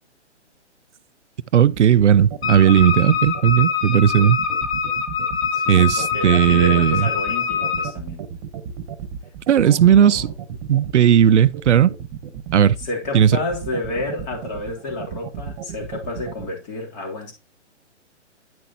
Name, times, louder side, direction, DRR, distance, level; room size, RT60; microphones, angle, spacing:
voice 1, 1.5-4.4 5.7-7.1 9.5-10.3 10.7-11.9 12.5-12.8 13.1-13.4, right 9 dB, 75° right, 0.6 m, -15 dB
sound 1, 1.7-16.5, right 9 dB, 30° right, 1.3 m, -33 dB
Wind instrument woodwind instrument, 2.4-7.9, left 7 dB, 60° left, 1.8 m, -24 dB
voice 2, 5.5-8.3 9.6-10.3 12.8-17.3, left 2 dB, 35° left, 3.3 m, -30 dB
9.5 x 5.9 x 2.9 m
hypercardioid pair, 140°, 35 cm